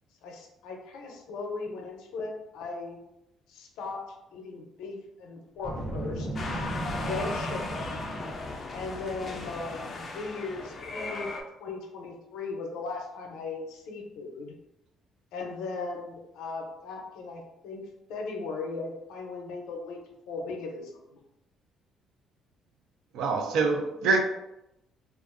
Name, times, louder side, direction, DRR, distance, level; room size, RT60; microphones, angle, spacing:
voice 1, 0.2-3.0 3.5-4.0 4.3-6.3 6.9-8.1 8.7-11.3 11.6-14.5 15.3-17.8 18.1-20.0 20.3-21.2, left 3 dB, 85° left, 1 dB, 0.5 m, -38 dB
Boom, 5.6-8.7, right 1 dB, 10° right, 0.7 m, -35 dB
sound 1, 6.4-11.4, left 3 dB, 35° left, 0.4 m, -37 dB
voice 2, 23.1-24.2, right 4 dB, 75° right, 4 dB, 0.4 m, -25 dB
2.5 x 2.3 x 2.4 m, 0.90 s
cardioid pair, 115°, 0 cm